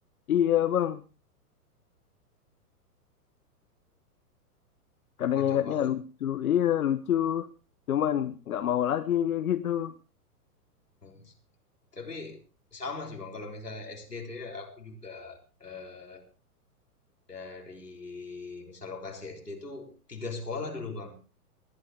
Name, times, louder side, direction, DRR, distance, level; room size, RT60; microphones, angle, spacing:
voice 1, 0.3-1.0 5.2-7.5 7.9-9.9, left 10 dB, 65° left, 11 dB, 1.0 m, -26 dB
voice 2, 5.3-5.9 11.0-11.3 11.9-12.4 12.7-16.2 17.3-21.2, left 3 dB, 90° left, 2 dB, 3.9 m, -40 dB
19.5 x 12.5 x 3.6 m, 0.33 s
figure-of-eight pair, 110°, 46 cm